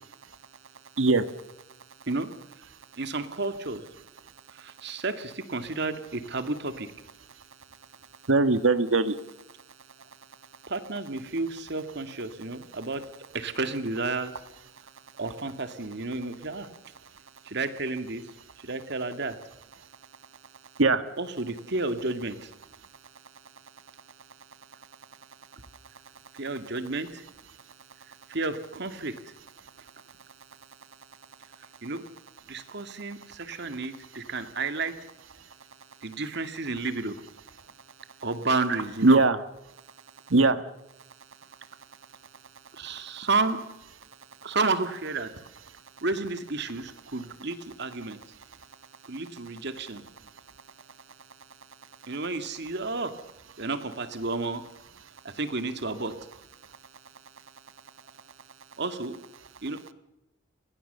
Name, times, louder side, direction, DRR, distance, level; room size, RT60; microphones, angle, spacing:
voice 1, 3.0-3.8 4.5-6.9 10.7-13.0 13.3-14.4 15.2-16.7 17.4-18.2 18.6-19.4 21.2-22.5 26.4-27.2 28.3-29.2 31.8-32.0 32.5-35.0 36.0-37.2 38.2-39.2 42.7-43.6 44.4-45.3 46.0-48.2 49.1-50.0 52.1-53.1 53.6-54.6 55.2-56.2 58.8-59.2 59.6-59.8, right 3 dB, 60° right, 9 dB, 2.2 m, -31 dB
voice 2, 8.3-9.1 20.8-21.0 39.0-39.4 40.3-40.6, right 3 dB, 85° right, 12 dB, 1.5 m, -20 dB
29.0 x 21.5 x 6.9 m, 0.90 s
head